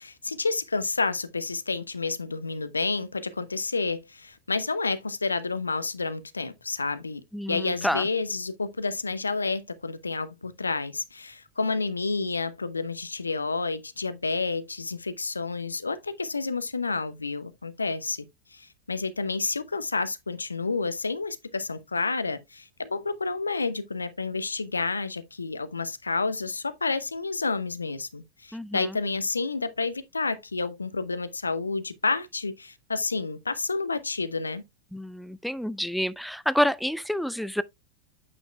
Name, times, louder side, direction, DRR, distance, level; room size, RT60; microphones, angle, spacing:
voice 1, 0.0-18.3 18.5-34.6, left 4 dB, 80° left, 0.7 m, -30 dB
voice 2, 7.3-8.0 28.5-28.9 34.9-37.6, equal, ahead, 0.3 m, -28 dB
8.6 x 6.6 x 2.2 m
figure-of-eight pair, 90°, 0 cm